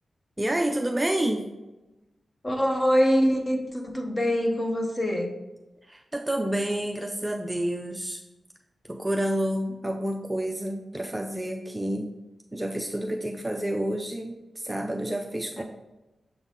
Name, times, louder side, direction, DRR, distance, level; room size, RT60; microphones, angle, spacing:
voice 1, 0.4-1.5 5.9-8.2 8.9-12.2 12.5-15.6, right 1 dB, 10° right, 2 dB, 0.4 m, -29 dB
voice 2, 2.4-5.3 15.6-15.7, equal, 25° left, 2 dB, 0.9 m, -24 dB
7.0 x 3.9 x 3.7 m, 1.0 s
wide cardioid pair, 135°, 0 cm